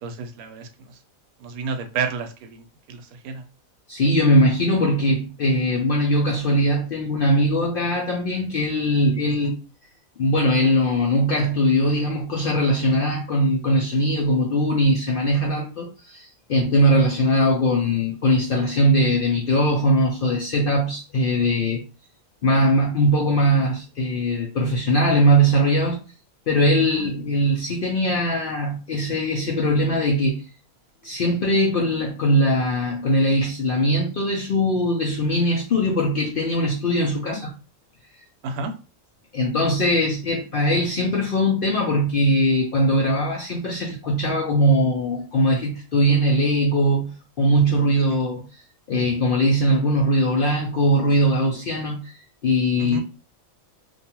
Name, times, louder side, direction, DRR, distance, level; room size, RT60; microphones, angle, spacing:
voice 1, 0.0-1.0 1.4-3.4 26.9-27.0 37.3-37.4 38.4-38.7 52.8-53.0, right 4 dB, 90° right, 1.1 m, -31 dB
voice 2, 3.9-9.5 10.2-21.8 22.4-26.0 26.5-30.4 31.0-37.5 39.3-48.5 48.9-52.1 52.4-53.0, equal, 65° left, 0.5 m, -20 dB
2.6 x 2.3 x 2.8 m
omnidirectional pair, 1.5 m